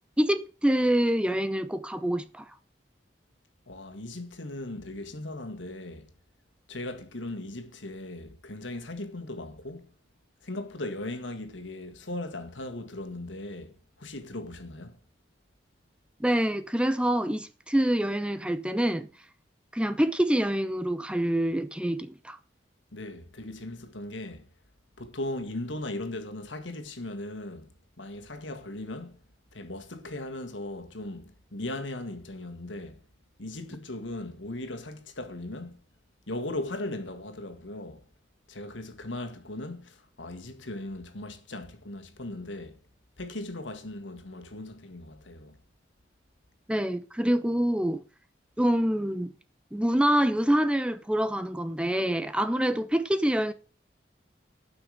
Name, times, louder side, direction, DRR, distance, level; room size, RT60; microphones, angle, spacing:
voice 1, 0.2-2.6 16.2-19.3 19.7-22.4 46.7-48.0 48.6-49.3 49.7-53.5, right 1 dB, 5° right, 0.5 m, -26 dB
voice 2, 3.7-6.1 6.7-10.0 10.4-15.0 22.9-24.5 25.0-29.3 29.5-33.0 33.4-35.8 36.3-38.1 38.5-42.8 43.2-45.6, left 1 dB, 90° left, 1.8 m, -38 dB
12.0 x 6.1 x 6.5 m
head